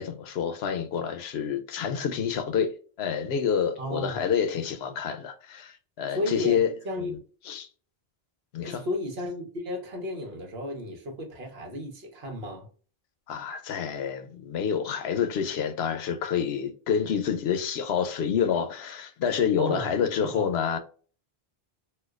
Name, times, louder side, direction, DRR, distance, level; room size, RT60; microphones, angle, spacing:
voice 1, 0.0-6.7 7.1-7.2 7.5-7.7 8.5-8.8 13.3-20.8, left 7 dB, 90° left, 0.9 m, -28 dB
voice 2, 3.8-4.2 6.1-7.2 8.6-12.7 19.6-19.9 20.3-20.5, left 1 dB, 75° right, 1.3 m, -33 dB
4.3 x 2.2 x 2.3 m
omnidirectional pair, 1.0 m